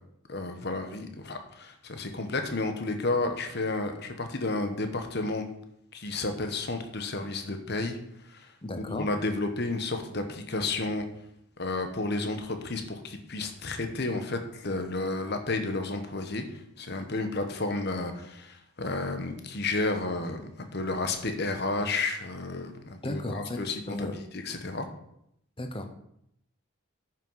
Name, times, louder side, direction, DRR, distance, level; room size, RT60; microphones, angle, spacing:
voice 1, 0.3-5.5 5.9-8.0 8.2-11.1 11.6-24.9, left 2 dB, 50° left, 6 dB, 1.2 m, -32 dB
voice 2, 8.6-9.1 23.0-23.6 23.9-24.1 25.6-25.9, left 1 dB, 25° left, 6 dB, 0.9 m, -34 dB
9.7 x 6.1 x 5.7 m, 0.75 s
head